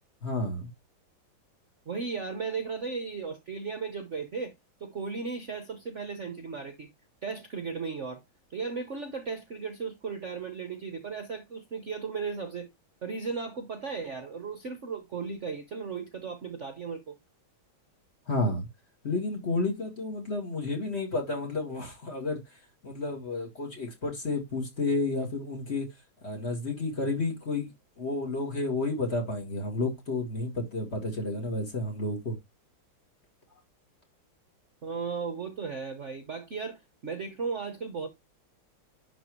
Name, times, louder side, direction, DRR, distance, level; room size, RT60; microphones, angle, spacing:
voice 1, 0.2-0.7 18.3-18.7 19.0-22.4 22.8-25.9 26.2-32.4, left 2 dB, 30° left, 2.3 m, -31 dB
voice 2, 1.9-4.5 4.8-6.9 7.2-8.2 8.5-12.7 13.0-17.2 34.8-38.1, right 5 dB, 45° right, 1.0 m, -36 dB
11.0 x 4.4 x 3.1 m
omnidirectional pair, 2.3 m